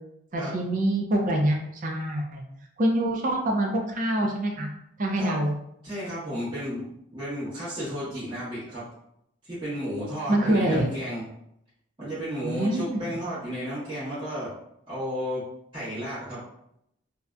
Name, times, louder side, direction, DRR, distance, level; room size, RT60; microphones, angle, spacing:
voice 1, 0.3-2.4 2.8-4.7 5.0-5.5 10.3-10.9 12.4-13.0, right 1 dB, 40° right, 1 dB, 0.4 m, -25 dB
voice 2, 5.8-8.8 9.4-11.3 12.0-14.5 14.9-15.4 15.7-16.4, equal, 25° right, -12 dB, 1.1 m, -33 dB
2.7 x 2.1 x 2.4 m, 0.77 s
head